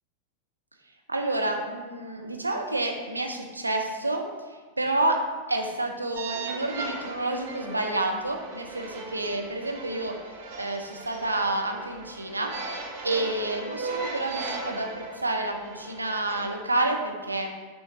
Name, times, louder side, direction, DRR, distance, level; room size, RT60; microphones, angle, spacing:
voice 1, 1.1-5.2 5.5-10.1 10.6-12.5 13.0-17.5, right 2 dB, 80° right, 2 dB, 0.5 m, -29 dB
sound 1, 6.2-16.5, right 3 dB, 45° right, 0.8 m, -38 dB
7.3 x 2.5 x 2.5 m, 1.4 s
figure-of-eight pair, 90°, 0 cm